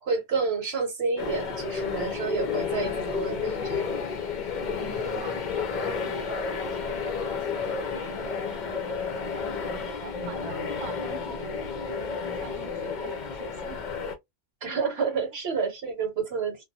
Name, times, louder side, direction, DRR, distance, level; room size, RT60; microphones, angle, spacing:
voice 1, 0.0-3.9 14.6-16.6, right 5 dB, 65° right, 1.1 m, -29 dB
sound 1, 1.2-14.2, left 5 dB, 55° left, 0.6 m, -31 dB
voice 2, 4.7-13.8 14.8-15.2, right 3 dB, 30° right, 0.7 m, -43 dB
2.5 x 2.3 x 2.7 m
omnidirectional pair, 1.2 m